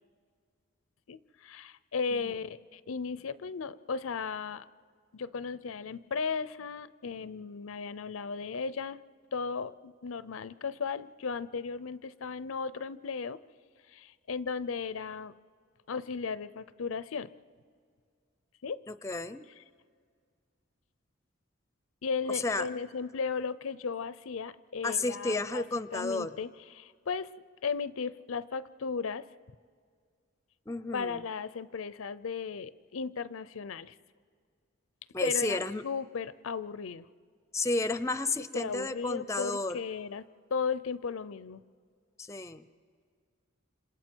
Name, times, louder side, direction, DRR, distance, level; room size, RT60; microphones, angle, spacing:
voice 1, 1.1-4.7 5.1-9.0 9.3-13.4 13.9-15.3 15.9-17.3 18.6-18.8 22.0-25.6 25.9-27.3 27.6-29.3 30.9-33.9 35.2-35.6 35.8-37.1 38.5-41.7, left 5 dB, 85° left, 16 dB, 0.5 m, -35 dB
voice 2, 18.9-19.4 22.3-22.7 24.8-26.3 30.7-31.2 35.1-35.8 37.5-39.8 42.2-42.7, left 2 dB, 15° left, 13 dB, 0.5 m, -32 dB
30.0 x 27.0 x 4.5 m, 2.1 s
head